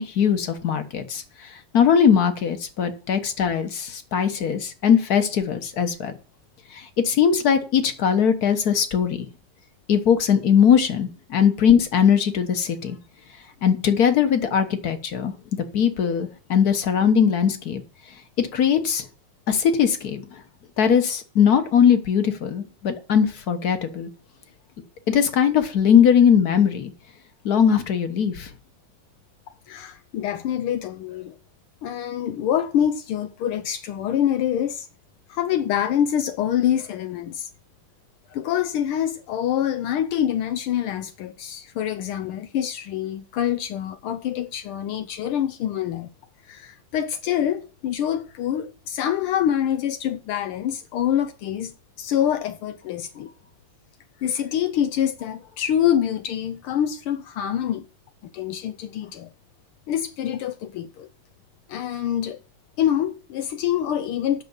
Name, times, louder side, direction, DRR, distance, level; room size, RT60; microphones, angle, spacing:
voice 1, 0.0-6.1 6.7-9.3 9.9-13.0 13.6-15.3 15.7-17.8 18.4-19.1 19.5-20.4 20.8-24.1 25.1-26.9 27.4-28.5, left 8 dB, 50° left, 1.5 m, -20 dB
voice 2, 29.7-31.4 31.8-34.9 35.3-37.5 38.3-46.1 46.5-53.3 54.2-57.8 58.2-59.3 59.9-61.1 61.7-62.4 62.8-64.4, left 10 dB, 80° left, 1.6 m, -25 dB
9.4 x 6.5 x 7.2 m
omnidirectional pair, 2.4 m